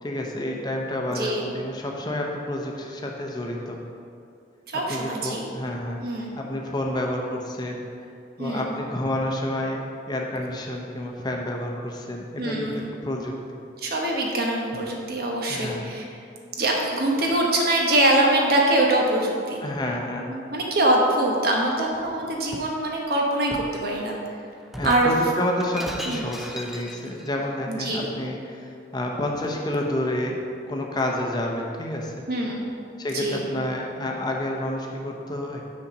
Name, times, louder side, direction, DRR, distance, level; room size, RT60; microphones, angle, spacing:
voice 1, 0.0-3.8 4.7-6.0 6.4-7.9 8.4-9.8 10.1-12.7 13.0-13.3 15.5-15.9 19.6-20.3 24.7-32.2 33.0-35.6, left 1 dB, 25° left, 0 dB, 0.8 m, -29 dB
voice 2, 1.1-1.5 4.7-5.4 6.0-6.4 8.4-8.8 12.4-12.9 13.8-16.0 16.6-19.6 20.5-24.4 24.8-25.1 26.0-26.2 27.7-28.1 32.3-32.7 33.1-33.5, right 1 dB, 55° right, -1 dB, 1.1 m, -23 dB
Shatter, 21.9-22.8 23.5-23.8 24.7-27.3, equal, ahead, 0.3 m, -37 dB
7.0 x 4.3 x 6.0 m, 2.4 s
head